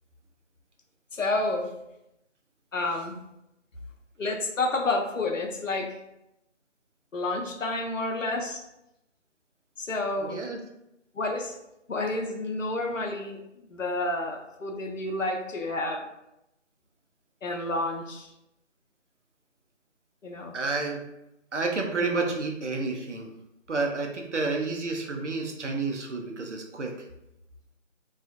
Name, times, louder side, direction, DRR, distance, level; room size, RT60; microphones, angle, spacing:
voice 1, 1.1-1.7 2.7-3.2 4.2-6.0 7.1-8.6 9.8-10.4 11.1-11.6 11.9-16.0 17.4-18.3 20.2-20.5 22.0-22.4, left 2 dB, 80° left, 2 dB, 0.6 m, -30 dB
voice 2, 10.2-10.6 20.5-21.0 21.5-23.3 23.7-26.9, right 3 dB, 65° right, 2 dB, 0.6 m, -30 dB
2.4 x 2.4 x 2.4 m, 0.86 s
figure-of-eight pair, 165°, 39 cm